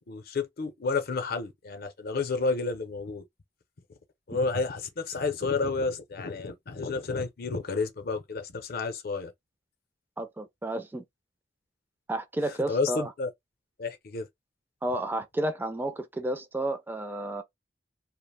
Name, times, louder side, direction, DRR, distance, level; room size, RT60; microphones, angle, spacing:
voice 1, 0.1-3.2 4.3-9.3 12.4-13.3 13.8-14.3, left 4 dB, 55° left, 0.6 m, -31 dB
voice 2, 10.2-11.0 12.1-13.1 14.8-17.4, right 1 dB, 10° right, 0.4 m, -31 dB
2.4 x 2.0 x 3.3 m
head